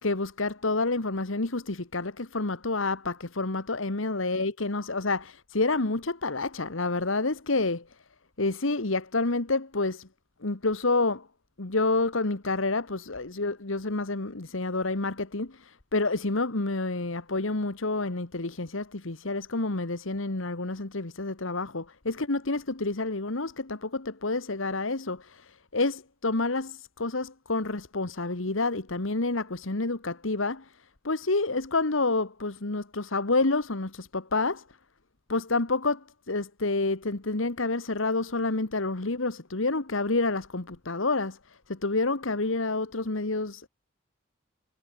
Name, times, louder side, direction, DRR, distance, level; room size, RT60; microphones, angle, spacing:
voice 1, 0.0-7.8 8.4-10.0 10.4-11.2 11.6-15.5 15.9-25.2 25.7-30.6 31.0-34.6 35.3-36.0 36.3-41.4 41.7-43.7, left 3 dB, 80° left, 1.6 m, -28 dB
head